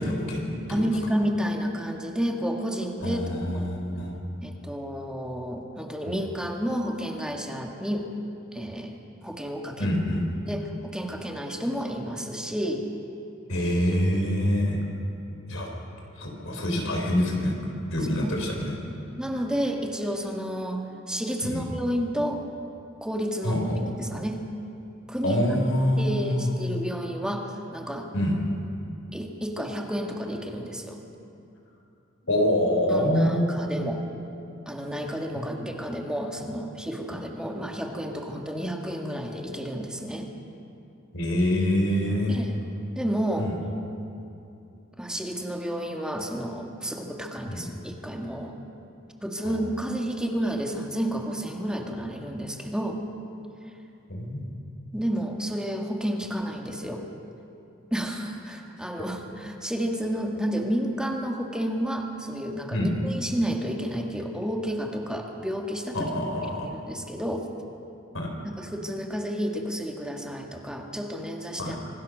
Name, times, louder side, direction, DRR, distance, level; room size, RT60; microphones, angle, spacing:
voice 1, 0.0-0.8 3.0-4.1 6.1-6.2 9.8-10.2 13.5-14.8 15.5-15.7 16.2-17.5 17.9-18.7 21.5-21.6 23.4-23.8 25.2-26.5 28.1-28.4 32.3-33.7 41.1-42.4 43.4-43.6 47.5-47.7 49.4-49.6 54.1-54.4 62.7-62.9 65.9-66.7 68.1-68.3 71.6-71.8, equal, 75° left, 1 dB, 4.5 m, -25 dB
voice 2, 0.7-3.2 3.5-3.8 4.4-8.1 8.5-9.0 9.2-9.9 10.5-12.9 18.2-18.5 18.9-22.4 23.0-23.6 24.0-24.4 25.1-25.4 26.0-28.1 29.1-31.0 32.9-34.0 34.7-40.3 42.3-42.6 42.9-43.5 45.0-48.5 49.2-53.0 54.9-57.1 57.9-66.1 66.6-67.5 68.4-71.8, equal, 5° right, 2 dB, 1.9 m, -31 dB
26.0 x 18.0 x 6.5 m, 2.7 s
head